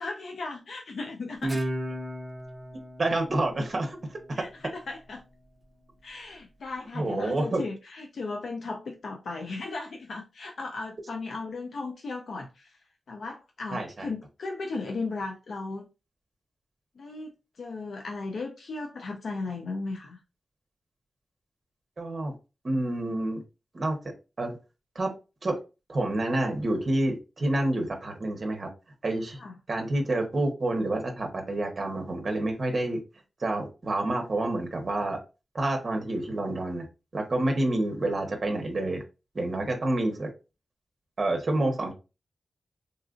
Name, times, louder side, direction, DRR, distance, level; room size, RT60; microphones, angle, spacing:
voice 1, 0.0-1.6 4.3-5.2 6.0-12.8 13.1-15.9 17.0-20.2 29.4-29.5, left 3 dB, 75° left, 0.4 m, -36 dB
Guitar, 1.4-4.7, right 1 dB, 20° right, 0.6 m, -35 dB
voice 2, 2.7-4.0 4.3-4.4 6.9-7.6 13.7-14.1 22.0-22.3 22.6-23.4 23.7-24.0 24.4-24.6 24.9-25.1 25.4-25.6 25.9-28.7 29.0-29.4 29.7-33.0 33.4-35.2 35.5-36.9 37.1-39.0 39.3-40.3 41.2-41.9, right 1 dB, 40° right, 0.9 m, -28 dB
3.8 x 2.4 x 2.4 m
wide cardioid pair, 130°, 0 cm